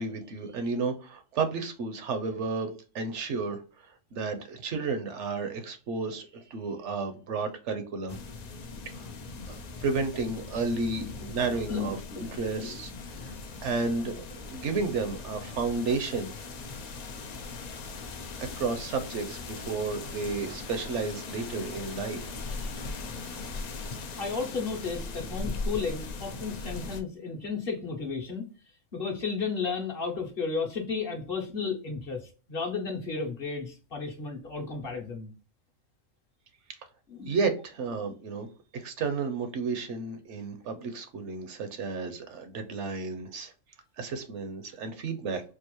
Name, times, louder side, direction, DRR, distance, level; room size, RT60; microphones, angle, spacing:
voice 1, 0.0-8.2 8.9-9.1 9.5-13.3 13.6-16.3 18.4-22.2 22.6-22.7 37.3-38.5 38.7-43.5 44.0-45.4, right 4 dB, 65° right, 0.9 m, -32 dB
sound 1, 8.1-27.0, left 3 dB, 75° left, 0.3 m, -39 dB
voice 2, 11.0-12.3 12.7-12.8 13.1-13.3 24.2-28.4 28.9-35.3 37.1-37.4, left 5 dB, 50° left, 0.9 m, -33 dB
4.5 x 2.4 x 3.0 m
omnidirectional pair, 1.4 m